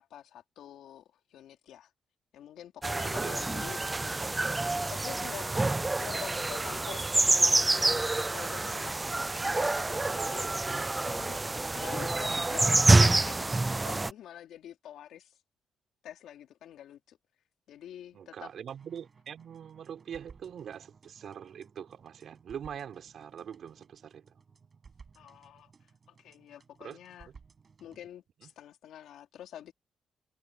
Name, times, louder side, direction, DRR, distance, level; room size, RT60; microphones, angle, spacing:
voice 1, 0.0-1.9 2.3-4.2 4.9-5.5 6.0-7.1 7.4-9.1 9.4-10.5 11.1-15.4 16.0-17.2 17.7-18.5 25.1-25.7 26.1-27.3 27.8-29.7, left 11 dB, 90° left, 3.3 m, -47 dB
sound 1, 2.8-14.1, right 2 dB, 15° right, 0.3 m, -27 dB
voice 2, 18.1-24.4 26.8-27.0 27.2-27.3 28.4-28.5, right 8 dB, 60° right, 6.0 m, -43 dB
sound 2, 18.7-28.1, right 5 dB, 35° right, 7.0 m, -58 dB
cardioid pair, 140°, 0 cm